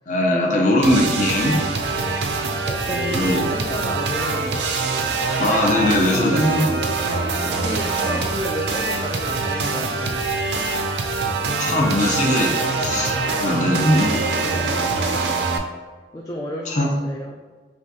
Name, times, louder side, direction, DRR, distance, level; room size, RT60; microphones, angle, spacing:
voice 1, 0.1-1.6 2.9-3.4 5.4-6.7 11.6-12.5 12.8-14.2 16.7-16.9, left 1 dB, 45° left, -1 dB, 0.7 m, -20 dB
sound 1, 0.8-15.6, right 3 dB, 80° right, 0.5 m, -24 dB
voice 2, 1.6-2.4 2.7-4.7 7.4-10.3 14.4-14.9 16.1-17.4, equal, 20° left, -1 dB, 0.3 m, -32 dB
6.0 x 2.3 x 2.7 m, 1.4 s
head